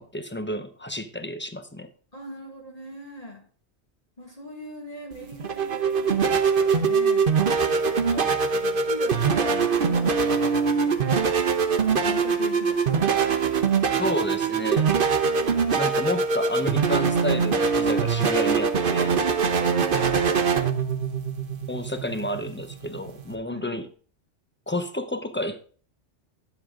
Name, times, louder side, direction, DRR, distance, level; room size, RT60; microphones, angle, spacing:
voice 1, 0.0-1.9 8.1-8.4 14.0-14.9 15.7-19.2 21.7-23.9 24.7-25.6, left 1 dB, 10° left, 9 dB, 0.8 m, -31 dB
voice 2, 2.1-3.4 4.2-7.9 8.5-11.5 12.0-13.9 15.2-16.0 19.6-20.4 23.5-23.8, left 1 dB, 35° left, -1 dB, 2.0 m, -39 dB
sound 1, 5.1-23.3, right 5 dB, 50° right, 1.1 m, -23 dB
10.5 x 7.6 x 3.7 m, 0.43 s
omnidirectional pair, 1.2 m